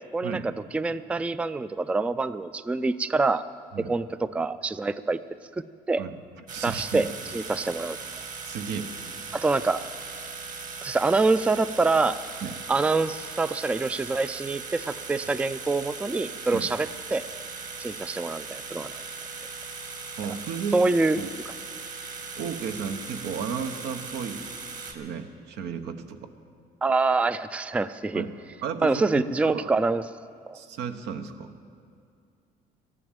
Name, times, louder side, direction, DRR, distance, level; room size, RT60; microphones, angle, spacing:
voice 1, 0.0-3.4 3.9-5.2 5.9-6.0 6.6-7.1 7.3-8.0 9.3-9.8 10.8-12.2 12.7-17.2 17.8-18.9 20.7-21.2 26.8-28.2 28.8-30.0 30.4-30.6, right 3 dB, 5° right, 14 dB, 0.3 m, -25 dB
sound 1, 6.5-24.9, right 4 dB, 50° right, 1.9 m, -39 dB
voice 2, 6.5-7.1 8.4-8.9 12.4-12.6 16.5-16.7 20.2-20.8 21.1-21.3 22.4-24.5 24.8-26.3 28.1-28.3 28.6-29.7 30.5-31.5, right 6 dB, 80° right, 8 dB, 1.0 m, -34 dB
13.5 x 11.0 x 9.0 m, 2.4 s
cardioid pair, 110°, 17 cm